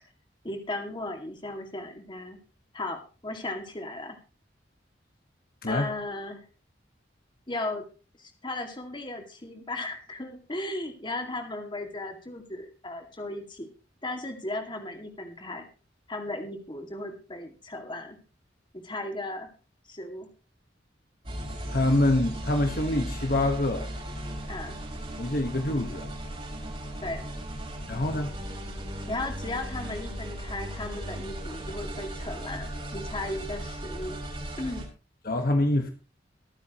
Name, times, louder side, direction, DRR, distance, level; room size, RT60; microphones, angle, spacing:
voice 1, 0.4-2.4 2.7-4.2 5.7-6.4 7.5-7.8 8.2-13.7 14.0-15.7 16.1-18.2 18.7-19.5 19.9-20.3 24.5-24.8 27.0-27.3 29.1-34.2 34.6-34.9, left 2 dB, 25° left, 2.3 m, -36 dB
sound 1, 21.2-34.8, equal, 30° right, 6.6 m, -36 dB
voice 2, 21.7-23.9 25.2-26.1 27.9-28.3 35.2-35.9, left 1 dB, 55° left, 1.5 m, -25 dB
24.0 x 9.2 x 3.1 m
head